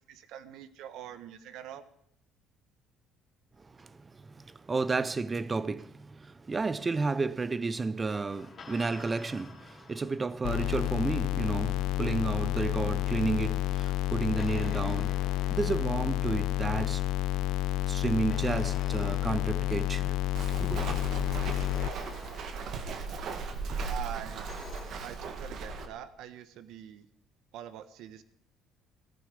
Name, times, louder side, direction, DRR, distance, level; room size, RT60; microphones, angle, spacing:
voice 1, 0.1-1.9 23.9-24.4 25.0-27.1 27.5-28.2, right 10 dB, 75° right, 1.3 m, -44 dB
voice 2, 4.7-6.1 6.5-15.1 15.5-17.0 17.9-20.2 20.6-21.0, right 3 dB, 20° right, 0.6 m, -31 dB
sound 1, 8.1-11.3 12.8-17.7 18.3-24.9, left 5 dB, 35° left, 2.8 m, -52 dB
sound 2, 10.4-21.9, left 14 dB, 80° left, 0.6 m, -30 dB
Walk footsteps, 20.4-25.9, right 4 dB, 50° right, 1.9 m, -37 dB
17.0 x 14.5 x 5.1 m
cardioid pair, 145°, 0 cm